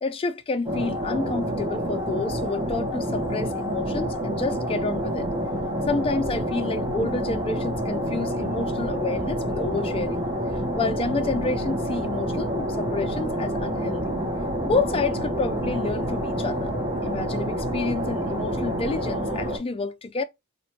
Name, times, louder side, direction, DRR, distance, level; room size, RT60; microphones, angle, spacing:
voice 1, 0.0-5.3 5.9-10.2 10.5-14.2 14.6-16.8 17.0-20.2, left 3 dB, 25° left, 0.4 m, -29 dB
sound 1, 0.6-19.6, equal, 20° right, 1.0 m, -28 dB
3.0 x 2.5 x 4.2 m
head